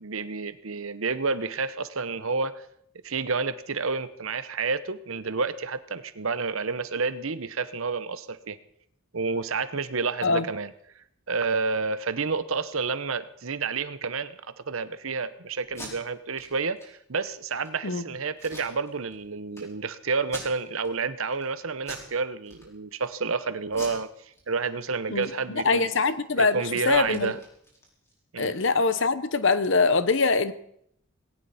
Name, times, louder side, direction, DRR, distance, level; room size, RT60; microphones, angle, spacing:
voice 1, 0.0-2.7 3.0-8.6 9.1-25.9 26.4-27.4 28.3-28.5, right 4 dB, 75° right, 1.0 m, -30 dB
Packing tape duct tape, 15.6-15.9 16.3-16.5 16.8-16.9 17.3-17.7 18.4-19.2 19.5-19.6 20.2-20.9 21.3-21.5 21.8-22.1 22.4-23.1 23.7-24.8 25.1-25.3 25.6-28.2, equal, 15° left, 4.6 m, -44 dB
voice 2, 25.6-27.3 28.4-30.5, left 4 dB, 60° left, 1.0 m, -23 dB
19.0 x 17.5 x 4.3 m
head